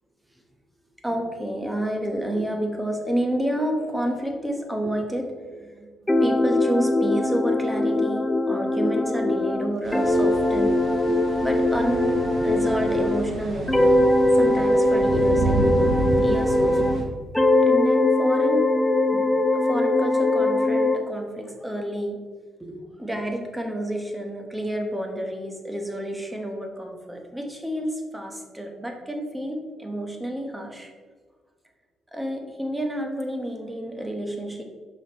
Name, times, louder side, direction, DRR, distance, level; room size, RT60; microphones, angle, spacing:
voice 1, 1.0-5.9 6.2-12.2 12.4-14.0 14.3-15.9 16.2-17.0 17.6-18.7 19.1-22.2 22.6-30.9 32.1-34.6, right 1 dB, 10° right, 3 dB, 1.0 m, -30 dB
sound 1, 6.1-13.3 13.7-17.0 17.3-21.0, left 1 dB, 5° left, 0.4 m, -21 dB
sound 2, 9.8-17.0, right 2 dB, 55° right, 1.4 m, -30 dB
6.1 x 5.1 x 3.0 m, 1.5 s
cardioid pair, 90°, 0 cm